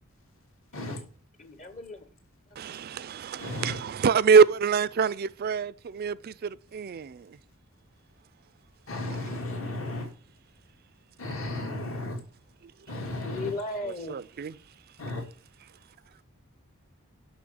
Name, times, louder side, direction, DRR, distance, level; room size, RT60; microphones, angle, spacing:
voice 1, 1.4-2.0 13.2-14.2, left 2 dB, 35° left, 0.9 m, -36 dB
voice 2, 2.6-7.4 14.1-14.6, right 5 dB, 50° right, 0.4 m, -25 dB
voice 3, 3.4-3.8 8.9-10.1 11.2-12.2 12.9-13.5 15.0-15.2, left 2 dB, 75° left, 2.3 m, -34 dB
6.6 x 6.3 x 7.6 m
head